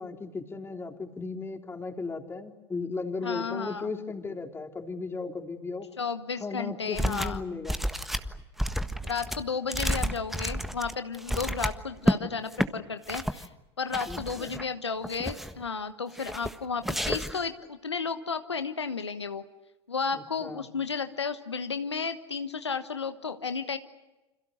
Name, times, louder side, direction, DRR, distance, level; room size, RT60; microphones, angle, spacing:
voice 1, 0.0-5.9 6.4-7.8 14.1-14.5 20.1-20.7, left 4 dB, 15° left, 3 dB, 3.5 m, -36 dB
voice 2, 3.2-3.9 6.0-7.4 9.0-13.5 13.8-19.4 19.9-23.8, left 5 dB, 85° left, 9 dB, 1.3 m, -33 dB
sound 1, 7.0-7.4 7.7-12.2 12.5-12.7 13.1-13.5 13.9-14.7 15.0-15.6 16.2-16.6 16.8-17.5, equal, ahead, 1.5 m, -31 dB
29.0 x 27.0 x 6.6 m, 1.0 s
figure-of-eight pair, 80°, 14 cm